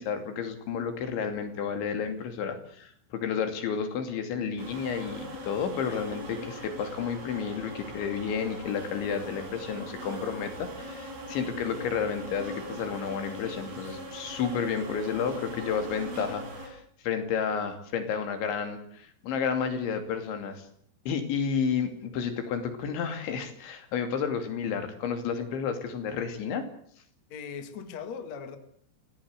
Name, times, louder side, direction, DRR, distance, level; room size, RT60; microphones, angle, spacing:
voice 1, 0.0-20.6 21.1-26.6, left 6 dB, 70° left, 7 dB, 5.0 m, -31 dB
sound 1, 4.6-16.7, equal, 50° right, 7.7 m, -40 dB
voice 2, 27.3-28.6, left 6 dB, 45° left, 8 dB, 2.6 m, -39 dB
25.5 x 18.0 x 8.2 m, 0.64 s
omnidirectional pair, 5.5 m